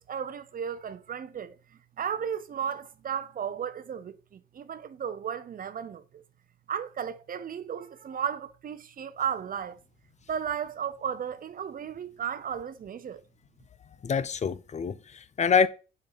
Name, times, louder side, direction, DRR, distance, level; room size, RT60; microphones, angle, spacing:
voice 1, 0.0-6.2 6.7-9.8 10.3-13.2, right 8 dB, 45° right, 0.7 m, -34 dB
voice 2, 14.0-15.7, left 6 dB, 35° left, 0.6 m, -26 dB
6.6 x 4.4 x 4.0 m
cardioid pair, 90°, 20 cm